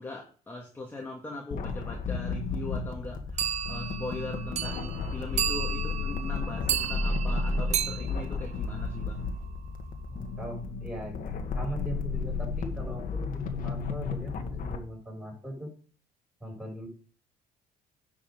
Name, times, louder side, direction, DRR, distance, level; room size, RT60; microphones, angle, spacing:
voice 1, 0.0-9.3, left 2 dB, 15° left, -1 dB, 1.9 m, -40 dB
sound 1, 1.5-14.8, left 4 dB, 55° left, 1.7 m, -33 dB
sound 2, 3.4-9.3, right 9 dB, 40° right, 0.4 m, -33 dB
voice 2, 10.1-11.3 11.5-15.7 16.4-16.9, right 1 dB, 5° right, -1 dB, 6.1 m, -40 dB
10.5 x 5.8 x 5.2 m, 0.41 s
cardioid pair, 110°, 17 cm